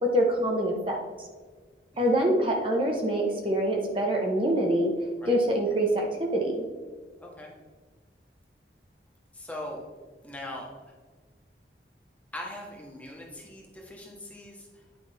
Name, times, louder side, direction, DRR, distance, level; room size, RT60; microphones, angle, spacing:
voice 1, 0.0-1.0 2.0-4.9 5.3-6.6, right 1 dB, 30° right, 0 dB, 1.0 m, -25 dB
voice 2, 7.2-7.5 9.3-9.8 10.2-10.7 12.3-14.8, left 1 dB, 10° left, -1 dB, 1.2 m, -41 dB
9.7 x 5.0 x 3.4 m, 1.5 s
head